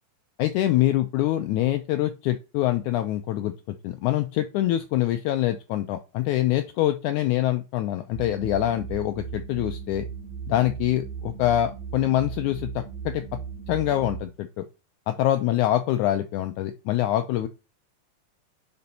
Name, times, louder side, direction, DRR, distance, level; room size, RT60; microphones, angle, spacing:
voice 1, 0.4-3.5 3.8-10.0 10.5-12.7 13.0-13.2 13.7-14.6 15.1-17.5, left 13 dB, 90° left, 8 dB, 1.7 m, -25 dB
sound 1, 8.1-14.2, right 7 dB, 60° right, 2.0 m, -37 dB
5.4 x 5.3 x 4.2 m, 0.30 s
omnidirectional pair, 4.0 m